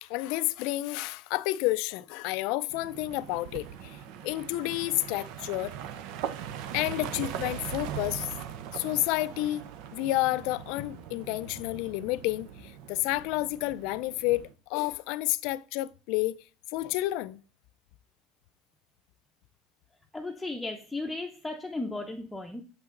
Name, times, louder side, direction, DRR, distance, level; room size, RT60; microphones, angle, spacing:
voice 1, 0.0-5.7 6.7-8.3 8.7-16.4 16.7-17.4, left 18 dB, 70° left, 0.4 m, -30 dB
sound 1, 2.7-14.5, right 9 dB, 70° right, 0.7 m, -40 dB
voice 2, 20.1-22.6, left 2 dB, 5° left, 0.7 m, -35 dB
7.5 x 5.8 x 3.8 m
supercardioid pair, 125°, 0 cm